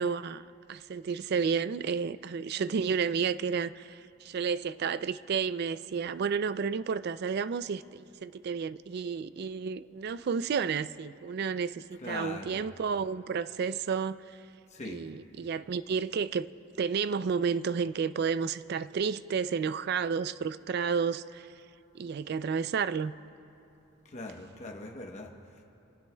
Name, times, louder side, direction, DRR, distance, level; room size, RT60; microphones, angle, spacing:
voice 1, 0.0-14.2 14.9-16.5 16.8-21.5 21.9-23.1, right 6 dB, 50° right, 15 dB, 0.3 m, -31 dB
voice 2, 12.0-12.6 14.7-15.0 24.0-25.6, left 2 dB, 35° left, 1 dB, 0.9 m, -41 dB
26.5 x 16.5 x 2.2 m, 2.8 s
head